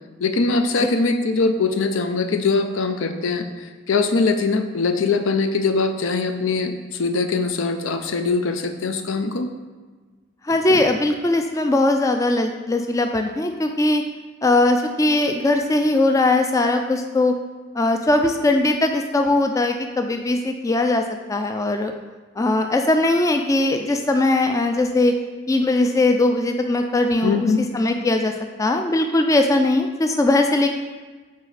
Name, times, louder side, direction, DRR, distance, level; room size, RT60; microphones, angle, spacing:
voice 1, 0.2-3.5 3.9-6.7 7.0-9.5 10.7-10.8 27.2-27.6, left 4 dB, 80° left, 8 dB, 0.5 m, -22 dB
voice 2, 10.4-14.0 14.4-17.4 17.8-21.0 21.3-21.9 22.4-25.1 25.5-27.5 27.7-28.3 28.6-30.7, left 2 dB, 15° left, 5 dB, 0.3 m, -20 dB
6.2 x 4.2 x 4.0 m, 1.4 s
head